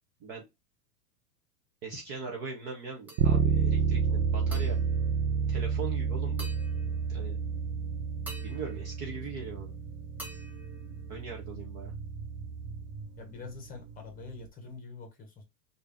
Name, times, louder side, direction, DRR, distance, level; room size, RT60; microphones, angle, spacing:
voice 1, 1.8-4.8 5.5-6.5 7.1-7.4 8.4-9.7 11.1-11.9, right 4 dB, 25° right, 0.4 m, -40 dB
sound 1, 3.1-3.7 4.5-5.9 6.4-7.4 8.3-9.7 10.2-11.6, right 1 dB, 5° right, 0.8 m, -49 dB
Bass guitar, 3.2-13.0, right 6 dB, 70° right, 0.6 m, -30 dB
sound 2, 3.7-14.5, right 4 dB, 40° right, 1.2 m, -45 dB
voice 2, 13.2-15.4, left 4 dB, 20° left, 1.1 m, -45 dB
3.3 x 2.6 x 3.3 m
supercardioid pair, 145°, 48 cm